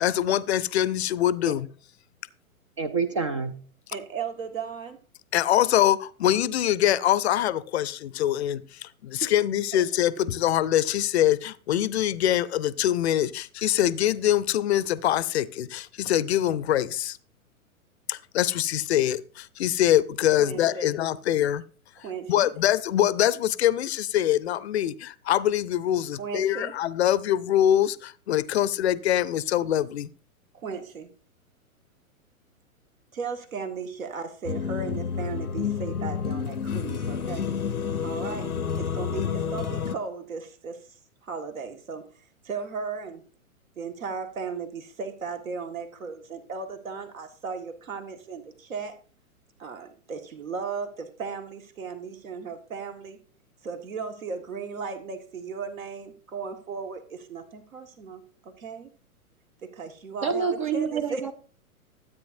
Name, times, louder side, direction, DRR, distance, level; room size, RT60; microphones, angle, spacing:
voice 1, 0.0-1.7 5.3-17.2 18.1-21.6 22.3-30.1, left 12 dB, 50° left, 0.6 m, -24 dB
voice 2, 2.8-3.6 60.2-61.3, right 5 dB, 25° right, 0.4 m, -27 dB
voice 3, 3.9-5.0 9.2-9.3 20.4-20.9 22.0-22.5 26.1-26.7 30.5-31.1 33.1-37.5 38.0-38.5 38.8-40.8 41.2-42.1 42.4-43.2 43.8-48.9 49.6-53.2 53.6-58.9 59.6-61.2, right 5 dB, 65° right, 1.7 m, -36 dB
sound 1, 34.4-39.9, left 7 dB, 85° left, 0.8 m, -29 dB
13.0 x 8.3 x 2.6 m
figure-of-eight pair, 110°, 43 cm